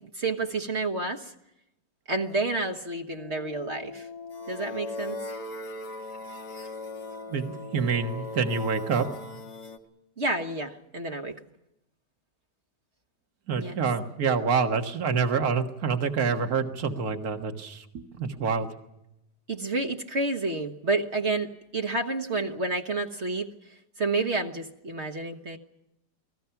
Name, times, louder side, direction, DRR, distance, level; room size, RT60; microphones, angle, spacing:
voice 1, 0.1-1.3 2.1-4.1 4.5-5.2 10.2-11.4 13.6-13.8 19.5-21.5 21.7-23.5 24.0-25.6, right 3 dB, 45° right, 3 dB, 1.6 m, -29 dB
sound 1, 3.2-9.8, left 2 dB, 80° left, 2.4 m, -39 dB
voice 2, 7.3-9.1 13.5-18.7, right 5 dB, 60° right, 5 dB, 2.0 m, -27 dB
29.5 x 20.0 x 5.9 m, 0.85 s
omnidirectional pair, 1.8 m